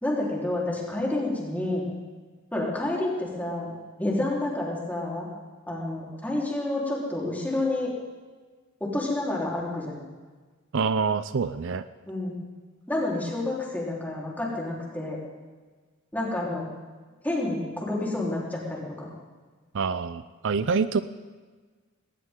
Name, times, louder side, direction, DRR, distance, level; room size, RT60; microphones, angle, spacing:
voice 1, 0.0-1.9 2.5-3.7 4.0-5.3 5.7-7.9 8.8-10.1 12.1-12.3 12.9-15.2 16.1-16.7 17.2-19.1, left 2 dB, 10° left, -5 dB, 3.9 m, -29 dB
voice 2, 10.7-11.9 19.7-21.0, right 5 dB, 60° right, 13 dB, 0.5 m, -26 dB
19.5 x 18.5 x 3.8 m, 1.4 s
head